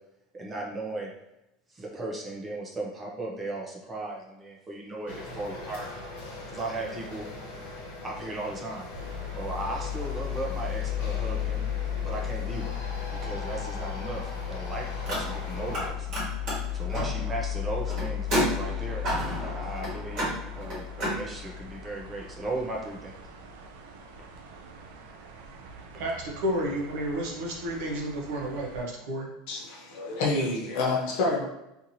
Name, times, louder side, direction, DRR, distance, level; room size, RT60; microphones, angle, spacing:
voice 1, 0.3-1.1 1.7-5.9 6.5-7.3 8.0-8.8 9.4-11.7 12.0-12.8 13.2-16.1 16.7-19.0 19.4-20.3 20.6-23.2, right 2 dB, 15° right, -2 dB, 0.4 m, -36 dB
sound 1, 5.1-15.9, left 2 dB, 85° left, 0.9 m, -41 dB
sound 2, 8.9-28.8, left 9 dB, 85° right, 0.4 m, -36 dB
Car, 15.0-15.8 16.1-21.2, equal, 30° right, 1.5 m, -31 dB
voice 2, 26.0-29.3, equal, 60° right, -1 dB, 0.8 m, -31 dB
voice 3, 29.5-31.4, left 3 dB, 55° left, -1 dB, 0.6 m, -28 dB
2.9 x 2.5 x 2.6 m, 0.91 s
supercardioid pair, 180°, 0 cm